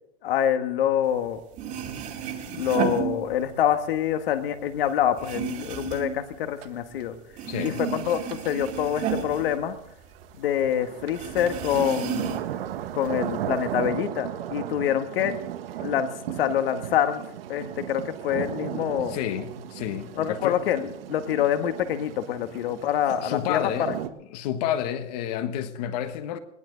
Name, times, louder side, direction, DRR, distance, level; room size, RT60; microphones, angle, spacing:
voice 1, 0.2-1.4 2.5-7.2 7.6-8.2 8.5-9.8 10.4-12.4 12.9-15.3 15.8-16.1 16.4-17.2 17.5-19.2 20.2-23.7, left 10 dB, 50° left, 1.8 m, -26 dB
sound 1, 1.3-1.4 1.5-3.8 4.1-7.0 7.3-10.3 10.6-10.7 11.1-12.6 13.0-13.8, right 8 dB, 20° right, 2.1 m, -32 dB
sound 2, 6.6-6.7 7.0-7.1 8.0-8.7 9.9-24.1, right 11 dB, 55° right, 1.5 m, -36 dB
voice 2, 7.5-7.8 19.1-20.7 23.1-24.0 24.3-26.4, left 10 dB, 35° left, 1.4 m, -30 dB
21.0 x 17.0 x 4.0 m
hypercardioid pair, 160°, 36 cm